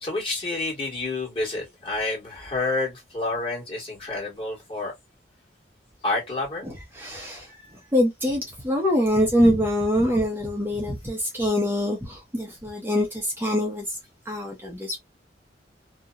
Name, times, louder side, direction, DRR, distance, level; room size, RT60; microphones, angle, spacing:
voice 1, 0.0-4.9 6.0-6.7, left 2 dB, 30° left, 1.5 m, -29 dB
voice 2, 6.6-13.9 14.3-15.0, equal, 15° right, 0.7 m, -24 dB
2.8 x 2.1 x 2.3 m
head